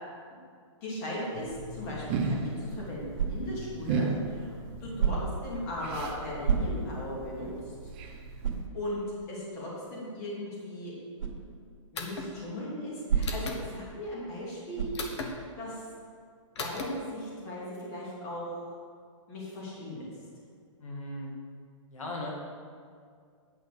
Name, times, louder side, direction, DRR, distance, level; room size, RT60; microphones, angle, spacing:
voice 1, 0.8-7.7 8.7-9.0 9.3-10.9 11.9-14.9 15.6-15.8 16.6-18.7 19.3-20.1, left 1 dB, 30° left, -5 dB, 2.6 m, -37 dB
sound 1, 1.3-8.6, right 4 dB, 25° right, 0.6 m, -36 dB
sound 2, 3.1-3.7 5.0-5.5 6.4-7.1 7.6-7.7 8.4-8.8 11.2-11.4 13.1-13.6 14.7-15.1, right 6 dB, 75° right, 1.8 m, -29 dB
sound 3, 11.9-12.3 13.2-13.6 14.9-15.3 16.6-16.9, left 4 dB, 55° left, 1.3 m, -36 dB
voice 2, 20.8-21.3 21.9-22.3, left 1 dB, 80° left, -2 dB, 2.0 m, -38 dB
9.0 x 6.4 x 6.7 m, 2.2 s
hypercardioid pair, 170°, 17 cm